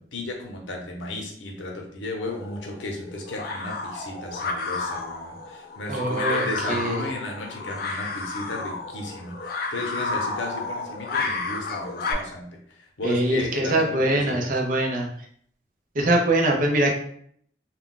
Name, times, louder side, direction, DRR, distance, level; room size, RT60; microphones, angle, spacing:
voice 1, 0.0-14.5, left 2 dB, 85° left, 1 dB, 0.7 m, -34 dB
sound 1, 2.3-12.1, left 3 dB, 50° left, 0.4 m, -31 dB
voice 2, 5.9-7.1 13.0-15.1 15.9-16.9, right 1 dB, 45° right, 1 dB, 0.5 m, -23 dB
2.3 x 2.2 x 3.7 m, 0.63 s
head